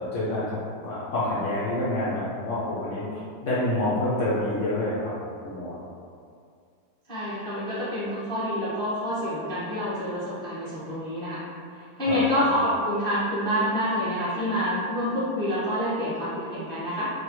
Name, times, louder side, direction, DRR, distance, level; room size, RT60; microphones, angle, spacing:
voice 1, 0.0-5.1 5.4-5.8 12.1-12.5, left 1 dB, 75° left, -9 dB, 0.7 m, -28 dB
voice 2, 7.1-11.4 12.0-17.1, equal, 5° left, -12 dB, 0.6 m, -27 dB
3.3 x 2.2 x 3.0 m, 2.3 s
omnidirectional pair, 1.9 m